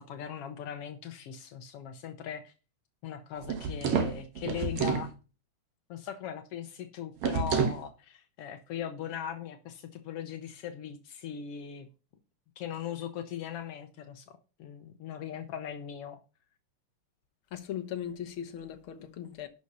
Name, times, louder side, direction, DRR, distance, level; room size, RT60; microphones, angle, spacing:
voice 1, 0.0-2.5 3.0-5.1 5.9-11.9 12.6-16.2, left 9 dB, 80° left, 1.3 m, -39 dB
sound 1, 3.4-5.1 7.2-7.8, right 6 dB, 65° right, 2.1 m, -29 dB
voice 2, 17.5-19.5, left 10 dB, 60° left, 1.4 m, -38 dB
11.5 x 5.5 x 5.4 m
omnidirectional pair, 3.9 m